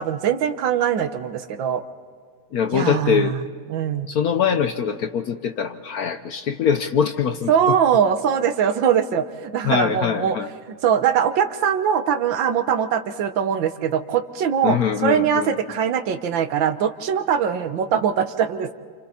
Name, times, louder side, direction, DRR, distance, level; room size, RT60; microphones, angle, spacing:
voice 1, 0.0-1.8 2.7-3.4 3.7-4.1 7.5-10.4 10.8-18.7, right 8 dB, 75° right, 10 dB, 1.6 m, -22 dB
voice 2, 2.5-3.4 4.1-7.7 9.6-10.5 14.6-15.6, left 7 dB, 65° left, 9 dB, 1.0 m, -23 dB
28.5 x 28.0 x 4.2 m, 2.1 s
omnidirectional pair, 2.1 m